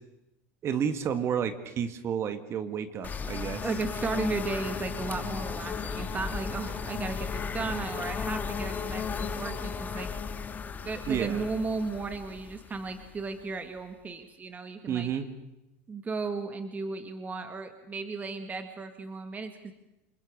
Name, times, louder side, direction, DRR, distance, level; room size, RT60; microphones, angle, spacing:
voice 1, 0.6-3.6 11.1-11.4 14.9-15.3, right 8 dB, 40° right, 9 dB, 2.1 m, -30 dB
sound 1, 3.0-13.7, left 5 dB, 25° left, 2.0 m, -35 dB
voice 2, 3.6-10.1 10.8-15.1 15.9-19.7, right 4 dB, 20° right, 8 dB, 1.8 m, -35 dB
29.0 x 21.5 x 6.5 m, 0.93 s
supercardioid pair, 110°, 7 cm